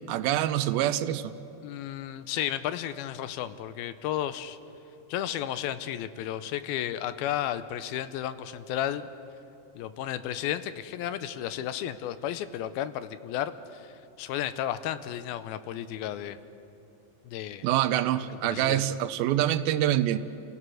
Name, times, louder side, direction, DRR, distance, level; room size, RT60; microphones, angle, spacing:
voice 1, 0.1-1.3 17.6-20.2, right 12 dB, 80° right, 13 dB, 2.4 m, -25 dB
voice 2, 1.6-4.6 5.1-9.1 9.8-13.9 14.2-16.4 17.3-17.7 18.5-18.9, left 11 dB, 80° left, 13 dB, 2.5 m, -33 dB
29.0 x 16.5 x 6.2 m, 2.7 s
omnidirectional pair, 4.4 m